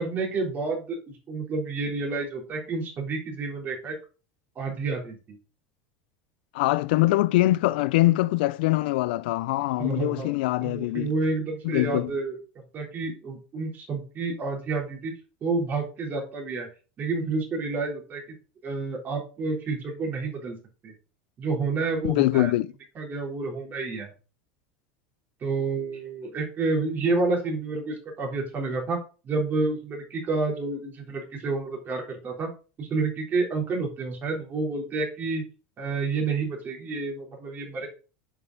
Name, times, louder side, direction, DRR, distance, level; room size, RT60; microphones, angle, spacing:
voice 1, 0.0-4.0 4.6-5.4 9.8-10.3 10.6-12.4 12.7-15.1 15.4-16.7 17.0-18.2 18.6-20.6 20.8-20.9 21.4-22.5 23.0-24.1 25.4-29.0 29.2-32.5 32.8-35.4 35.8-37.9, right 3 dB, 35° right, 3.5 m, -29 dB
voice 2, 6.5-11.1 11.6-12.1 22.1-22.7, left 18 dB, 75° left, 0.5 m, -23 dB
8.0 x 5.6 x 4.0 m
supercardioid pair, 105°, 5 cm